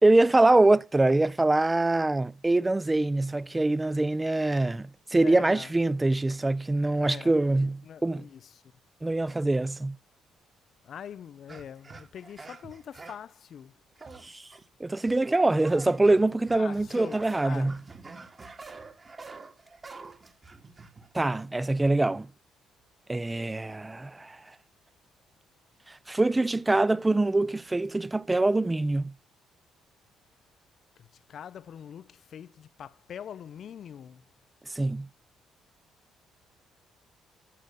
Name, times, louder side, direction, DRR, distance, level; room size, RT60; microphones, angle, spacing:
voice 1, 0.0-8.2 9.0-10.0 14.2-14.4 14.8-17.8 21.1-22.3 23.1-24.4 25.9-29.1 34.7-35.1, right 2 dB, 20° right, 0.5 m, -24 dB
voice 2, 5.2-5.7 7.0-8.6 10.8-13.7 16.5-17.7 31.0-34.2, left 8 dB, 60° left, 0.4 m, -43 dB
sound 1, 11.5-13.3 14.0-14.6 15.0-21.1, right 4 dB, 35° right, 1.8 m, -46 dB
12.5 x 6.4 x 6.8 m
hypercardioid pair, 50°, 0 cm